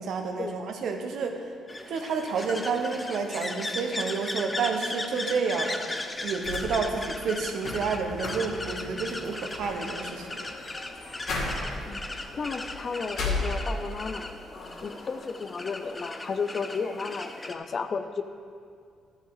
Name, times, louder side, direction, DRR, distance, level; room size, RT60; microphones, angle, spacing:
voice 1, 0.0-1.5 1.9-5.8 6.2-10.4, right 5 dB, 70° right, 4 dB, 1.2 m, -30 dB
sound 1, 1.7-17.5, left 2 dB, 20° left, 0.8 m, -37 dB
sound 2, 6.4-14.1 14.5-15.3, left 2 dB, 80° left, 2.4 m, -36 dB
voice 2, 11.9-14.3 14.8-18.2, left 5 dB, 45° left, 10 dB, 0.6 m, -33 dB
12.0 x 7.4 x 4.9 m, 2.3 s
cardioid pair, 90°, 0 cm